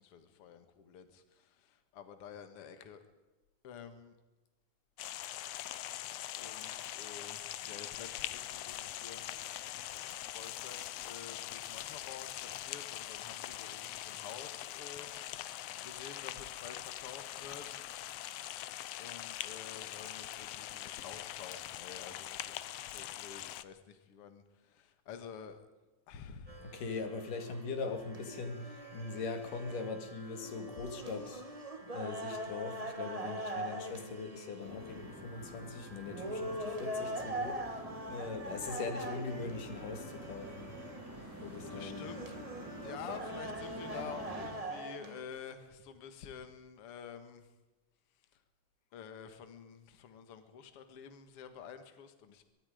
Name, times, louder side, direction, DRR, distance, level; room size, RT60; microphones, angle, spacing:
voice 1, 0.0-3.0 3.6-4.1 6.4-9.4 10.3-15.1 15.8-17.9 19.0-25.6 26.1-26.6 41.7-42.3 42.8-47.5 48.9-52.4, left 7 dB, 50° left, 2.4 m, -49 dB
sound 1, 5.0-23.6, left 13 dB, 70° left, 1.6 m, -42 dB
sound 2, 26.5-45.2, right 1 dB, 20° right, 0.9 m, -43 dB
voice 2, 26.6-31.4 31.9-40.7 41.4-42.1, left 4 dB, 85° left, 3.8 m, -41 dB
sound 3, 34.6-44.5, right 1 dB, 5° right, 5.4 m, -48 dB
23.5 x 23.0 x 5.1 m
omnidirectional pair, 3.6 m